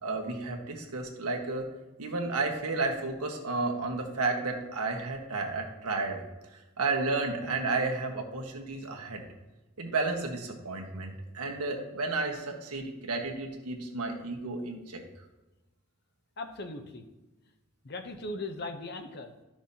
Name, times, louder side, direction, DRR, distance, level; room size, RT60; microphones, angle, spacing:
voice 1, 0.0-1.7 2.0-6.2 6.8-9.2 9.8-15.0, right 3 dB, 90° right, 1 dB, 1.4 m, -32 dB
voice 2, 16.4-17.0 17.8-19.3, left 2 dB, 45° left, 6 dB, 0.8 m, -38 dB
12.0 x 6.0 x 2.8 m, 1.1 s
head